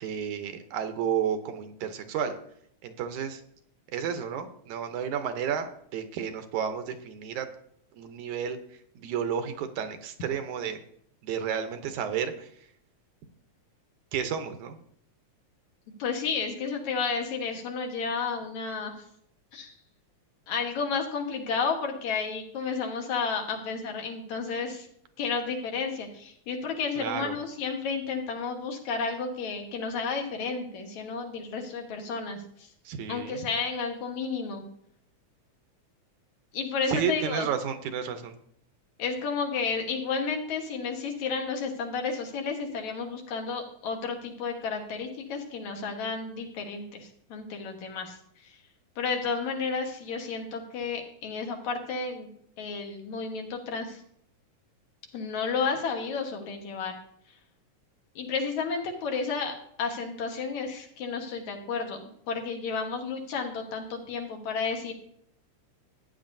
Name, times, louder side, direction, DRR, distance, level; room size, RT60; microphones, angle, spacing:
voice 1, 0.0-2.4 2.8-3.4 3.9-7.5 8.0-8.6 9.0-10.8 11.2-12.5 14.1-14.8 27.0-27.4 32.9-33.4 36.9-38.4, right 8 dB, 75° right, 8 dB, 2.2 m, -31 dB
voice 2, 16.0-18.9 19.5-19.7 20.5-24.9 25.2-32.7 33.1-34.6 36.5-37.5 39.0-48.6 49.0-52.3 52.6-54.0 55.1-56.9 58.2-59.5 59.8-62.0 62.3-64.9, left 5 dB, 70° left, 3 dB, 2.6 m, -32 dB
14.5 x 9.5 x 2.6 m, 0.68 s
omnidirectional pair, 3.5 m